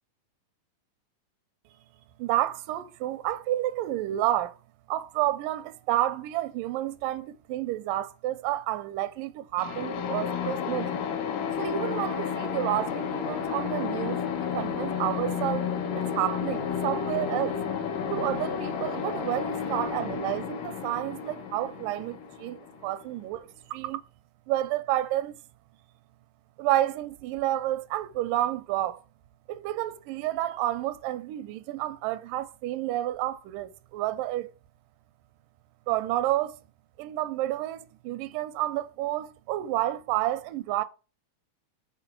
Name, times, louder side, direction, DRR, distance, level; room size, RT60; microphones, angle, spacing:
voice 1, 2.2-4.6 4.9-10.9 11.6-15.7 16.0-17.6 18.1-24.0 24.5-25.3 26.6-29.0 29.5-34.5 35.9-36.6 37.0-40.8, right 14 dB, 85° right, 2.2 m, -30 dB
sound 1, 9.6-23.3, left 7 dB, 75° left, 2.7 m, -32 dB
6.9 x 4.0 x 5.9 m
omnidirectional pair, 3.8 m